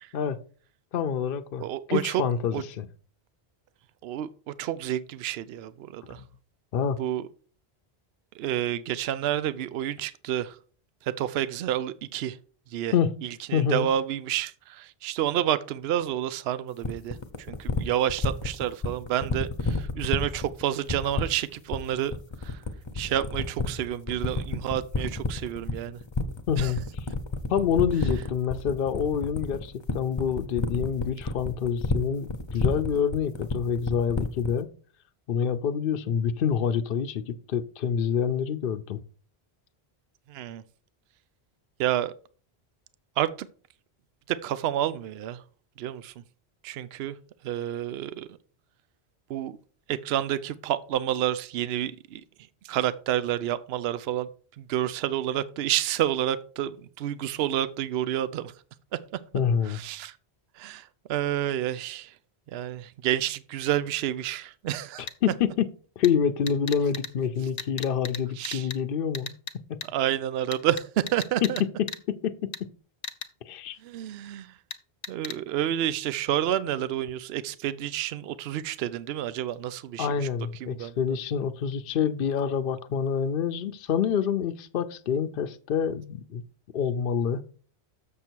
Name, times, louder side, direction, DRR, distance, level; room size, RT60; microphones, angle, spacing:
voice 1, 0.9-1.6 1.9-2.9 6.7-7.0 12.9-13.1 13.5-13.9 26.5-26.8 27.5-34.7 35.3-39.0 59.3-59.8 65.2-65.7 66.0-69.3 69.7-69.8 71.4-72.7 73.5-73.8 80.0-86.4 86.7-87.4, left 7 dB, 65° left, 0.8 m, -27 dB
voice 2, 1.6-2.2 2.5-2.6 4.0-6.2 7.0-7.2 8.4-10.6 11.0-12.4 12.7-12.9 13.2-22.2 22.4-22.6 22.9-26.0 26.6-26.7 40.3-40.6 41.8-42.1 43.2-43.5 44.3-45.4 45.8-46.1 46.6-47.1 47.4-48.3 49.3-49.6 49.9-52.2 52.6-54.3 54.6-58.5 59.7-60.2 60.6-62.1 62.5-65.1 68.4-68.7 69.9-71.6 73.8-74.5 75.1-80.3 80.6-80.9, right 11 dB, 75° right, 0.8 m, -29 dB
sound 1, 16.8-34.6, left 3 dB, 30° left, 0.7 m, -29 dB
sound 2, 65.1-65.2 66.0-66.1 66.5-67.1 67.6-68.2 68.4-68.8 69.1-69.5 69.8-69.9 70.5-71.6 71.9-72.0 72.5-72.6 73.0-73.3 74.7-74.8 75.0-75.4, left 6 dB, 80° left, 1.1 m, -35 dB
6.9 x 6.7 x 4.5 m
omnidirectional pair, 1.1 m